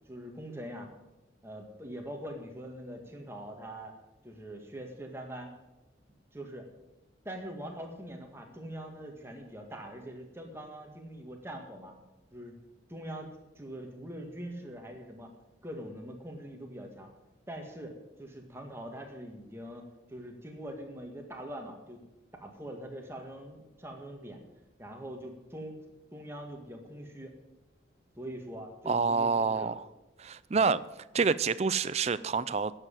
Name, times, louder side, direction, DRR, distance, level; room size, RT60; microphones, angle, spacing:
voice 1, 0.1-0.9 1.4-3.9 4.2-5.5 6.3-6.7 7.3-11.9 12.3-12.6 12.9-15.3 15.6-17.1 17.5-22.0 22.4-24.4 24.8-25.8 26.1-27.3 28.2-29.7 30.5-30.7, right 1 dB, 15° right, 2 dB, 1.8 m, -43 dB
voice 2, 28.9-29.8 30.2-30.8 31.1-32.7, right 5 dB, 35° right, 15 dB, 0.4 m, -27 dB
11.0 x 7.7 x 9.0 m, 1.0 s
head